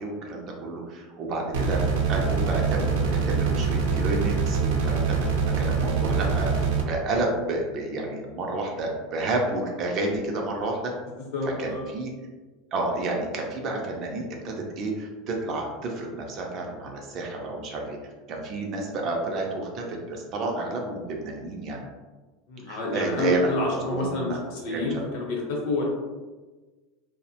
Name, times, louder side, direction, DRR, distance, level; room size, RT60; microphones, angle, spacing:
voice 1, 0.0-10.9 11.4-12.1 12.7-21.8 22.7-24.4 24.7-25.0, right 2 dB, 30° right, 0 dB, 0.3 m, -30 dB
sound 1, 1.5-6.8, right 5 dB, 85° right, 0.5 m, -24 dB
voice 2, 11.3-11.8 22.5-25.8, left 2 dB, 55° left, -2 dB, 0.7 m, -28 dB
2.8 x 2.0 x 2.7 m, 1.3 s
supercardioid pair, 180°, 0 cm